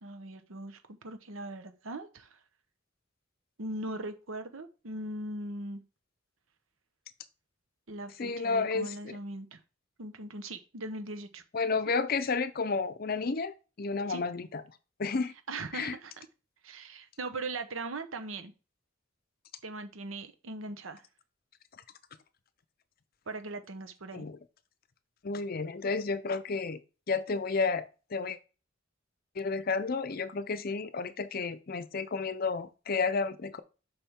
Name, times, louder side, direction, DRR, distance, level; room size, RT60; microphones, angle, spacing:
voice 1, 0.0-2.4 3.6-5.8 7.9-9.6 10.0-11.4 14.1-14.2 15.5-16.3 16.6-18.5 19.6-21.0 23.3-24.3, right 2 dB, 90° right, 1.0 m, -40 dB
voice 2, 8.2-9.2 11.5-14.6 15.0-15.3 15.7-15.9 24.1-24.4 25.2-26.8 27.1-28.4 29.4-33.6, left 4 dB, 50° left, 0.6 m, -31 dB
7.1 x 5.4 x 3.6 m
head